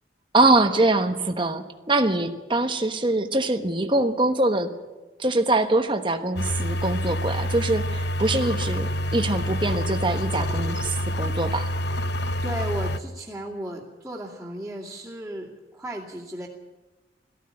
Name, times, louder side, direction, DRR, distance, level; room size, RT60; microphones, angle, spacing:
voice 1, 0.3-4.7 5.2-11.7, right 2 dB, 25° right, 6 dB, 1.1 m, -23 dB
sound 1, 6.4-13.0, equal, 55° left, 0.8 m, -27 dB
voice 2, 12.4-16.5, right 1 dB, 5° right, -8 dB, 2.4 m, -35 dB
18.0 x 15.0 x 9.8 m, 1.2 s
head